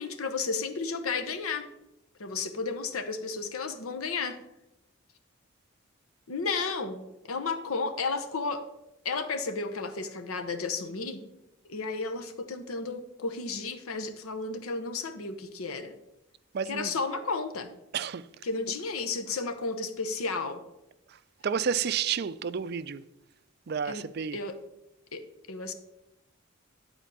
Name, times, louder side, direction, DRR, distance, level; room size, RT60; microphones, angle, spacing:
voice 1, 0.0-1.6 2.2-4.4 6.3-8.6 9.0-11.2 11.7-16.0 16.7-17.7 18.4-20.6 23.9-24.0 24.3-24.5 25.1-25.2 25.5-25.7, left 4 dB, 85° left, 0.9 m, -33 dB
voice 2, 16.5-16.9 17.9-18.2 21.4-23.0 23.7-24.4, right 7 dB, 50° right, 0.4 m, -30 dB
10.0 x 4.4 x 6.8 m
head